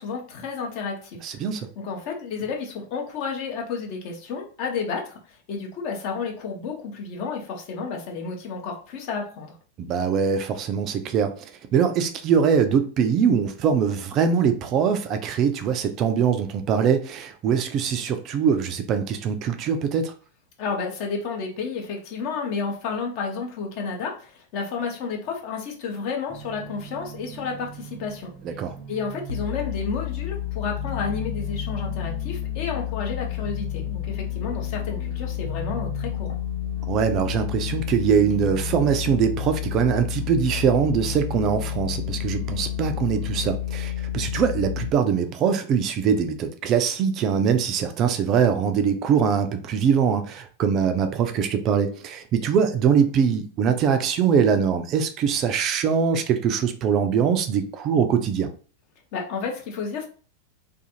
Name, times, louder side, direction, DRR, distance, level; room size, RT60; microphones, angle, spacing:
voice 1, 0.0-1.2 1.8-9.6 20.6-28.3 28.9-36.4 59.1-60.1, left 5 dB, 45° left, 1 dB, 0.7 m, -31 dB
voice 2, 1.2-1.7 9.8-11.3 11.7-20.1 28.4-28.8 36.9-58.5, right 7 dB, 35° right, 8 dB, 0.3 m, -22 dB
sound 1, 26.3-43.6, right 6 dB, ahead, 0.7 m, -41 dB
sound 2, 29.3-44.9, left 13 dB, 75° left, 0.3 m, -30 dB
2.5 x 2.3 x 2.7 m, 0.40 s
figure-of-eight pair, 90°, 0 cm